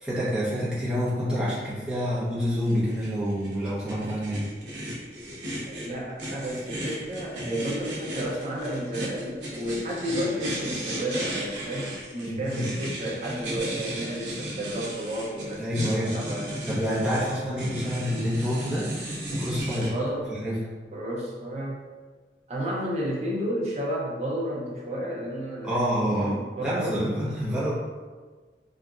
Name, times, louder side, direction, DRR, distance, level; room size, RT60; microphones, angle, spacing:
voice 1, 0.0-4.5 12.2-12.6 15.6-16.1 16.6-18.9 19.4-19.9 20.3-20.6 25.6-27.7, equal, 5° right, -11 dB, 0.9 m, -27 dB
sound 1, 2.7-19.9, right 1 dB, 80° right, 0.7 m, -35 dB
voice 2, 5.6-16.5 19.8-20.3 20.9-21.9 22.5-27.1, equal, 35° right, -4 dB, 0.6 m, -32 dB
2.8 x 2.4 x 2.5 m, 1.4 s
head